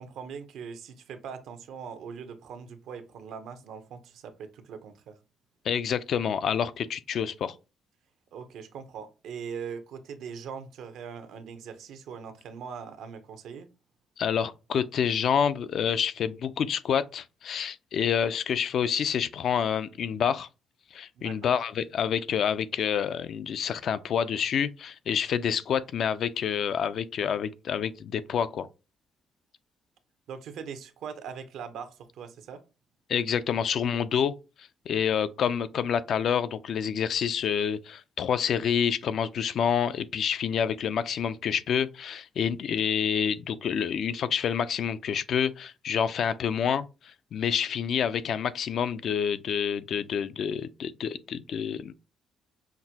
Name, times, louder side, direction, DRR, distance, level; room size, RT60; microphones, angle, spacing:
voice 1, 0.0-5.2 8.3-13.7 21.2-21.5 30.3-32.6, right 6 dB, 80° right, 0.6 m, -41 dB
voice 2, 5.7-7.5 14.2-20.5 20.9-28.7 33.1-34.3 34.9-51.9, left 8 dB, 65° left, 0.3 m, -28 dB
5.8 x 2.2 x 2.8 m
cardioid pair, 90°, 0 cm